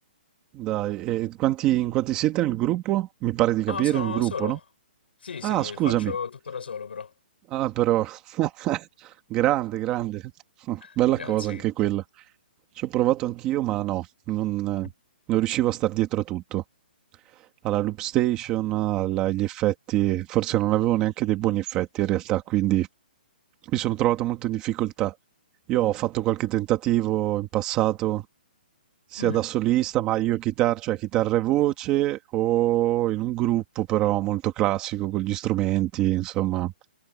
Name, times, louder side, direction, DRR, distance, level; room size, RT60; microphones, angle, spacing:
voice 1, 0.5-4.6 5.4-6.1 7.5-10.3 10.7-12.0 12.8-14.9 15.3-16.6 17.6-22.9 23.7-25.2 25.7-28.3 29.1-36.7, right 14 dB, 15° right, 1.8 m, -25 dB
voice 2, 3.7-4.6 5.2-7.1 10.8-11.7 29.2-29.4, left 6 dB, 90° left, 5.7 m, -35 dB
hypercardioid pair, 180°, 5 cm